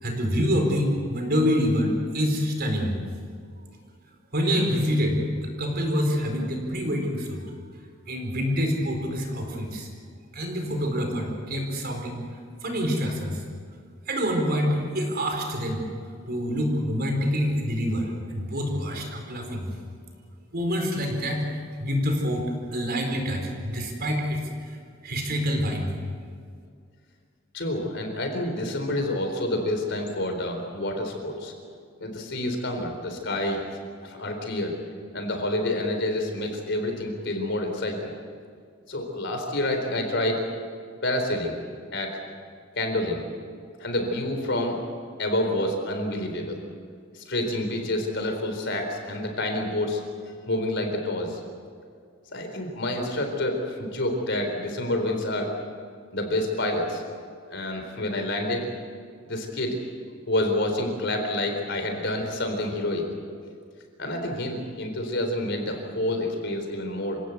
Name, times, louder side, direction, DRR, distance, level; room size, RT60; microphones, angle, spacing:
voice 1, 0.0-3.0 4.3-7.5 8.1-9.9 10.3-12.2 12.6-13.4 14.1-19.7 20.5-22.5 22.7-24.4 25.0-25.9, equal, 50° right, 2 dB, 4.5 m, -26 dB
voice 2, 27.5-31.5 32.0-33.6 34.0-34.7 35.1-38.1 38.9-40.4 41.0-41.5 41.9-42.2 42.7-43.2 43.8-44.8 45.2-46.6 47.1-50.0 50.5-51.4 52.3-55.5 56.1-57.0 57.5-58.7 59.3-59.8 60.3-63.1 63.4-63.5 64.0-67.2, left 1 dB, 60° left, 4 dB, 4.2 m, -28 dB
27.0 x 17.0 x 8.3 m, 2.2 s
head